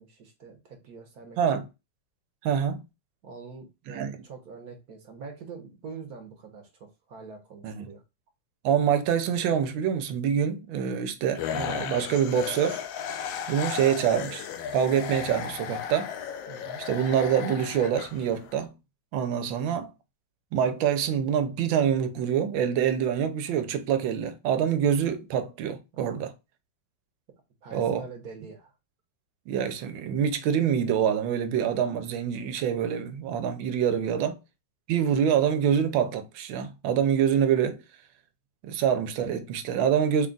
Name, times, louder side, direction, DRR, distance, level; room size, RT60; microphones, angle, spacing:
voice 1, 0.0-1.6 3.2-8.0 16.5-16.8 25.9-26.3 27.6-28.7 34.0-34.3, right 5 dB, 60° right, 1.2 m, -44 dB
voice 2, 2.4-2.8 3.9-4.1 7.6-7.9 8.6-12.8 13.5-16.1 16.9-18.7 19.1-19.9 20.5-26.3 27.7-28.0 29.5-34.3 34.9-37.8 38.6-40.3, right 8 dB, 90° right, 1.4 m, -26 dB
sound 1, 11.3-18.6, left 8 dB, 80° left, 1.3 m, -35 dB
3.8 x 2.3 x 3.7 m
omnidirectional pair, 2.1 m